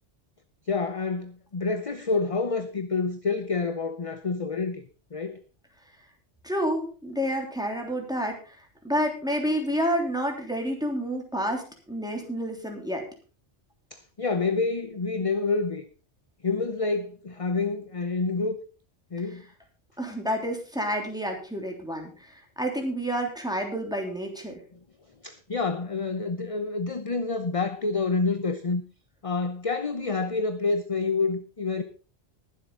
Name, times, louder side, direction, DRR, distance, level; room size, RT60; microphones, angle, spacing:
voice 1, 0.7-4.8 5.1-5.4 13.9-15.8 16.4-18.6 19.1-19.4 25.2-28.8 29.2-31.8, left 4 dB, 35° left, 10 dB, 0.8 m, -28 dB
voice 2, 6.4-13.0 20.0-24.6, equal, 5° right, 2 dB, 3.1 m, -29 dB
20.5 x 7.7 x 3.8 m, 0.36 s
omnidirectional pair, 1.2 m